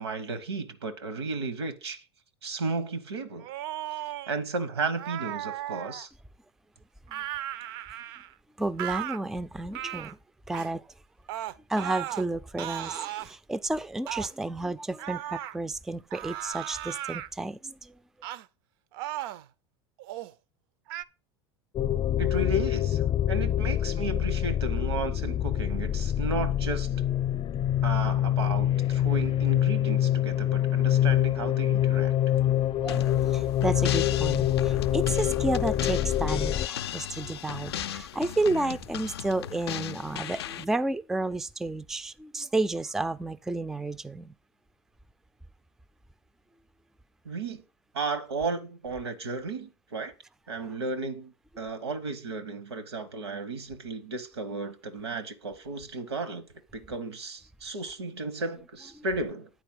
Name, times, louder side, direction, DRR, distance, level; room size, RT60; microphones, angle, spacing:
voice 1, 0.0-2.0 2.4-3.5 4.3-6.1 22.2-26.9 27.8-32.1 47.2-47.6 47.9-50.1 50.5-56.5 56.7-59.5, right 3 dB, 90° right, 1.0 m, -34 dB
sound 1, 3.4-4.3 5.0-6.1 7.1-8.3 8.8-9.2 9.7-10.1 10.5-10.7 11.3-12.3 12.6-13.3 14.1-14.3 15.0-15.6 16.1-17.3 18.2-18.5 18.9-19.5 20.0-20.3 20.9-21.0, right 13 dB, 65° right, 0.4 m, -36 dB
voice 2, 8.6-10.2 10.5-10.9 11.7-18.0 32.8-44.4 50.5-50.8 59.0-59.1, right 2 dB, 5° right, 0.3 m, -31 dB
sound 2, 21.8-36.7, left 12 dB, 40° left, 0.6 m, -25 dB
sound 3, 32.9-40.6, left 10 dB, 80° left, 0.4 m, -37 dB
9.3 x 4.3 x 5.4 m
hypercardioid pair, 85°, 13 cm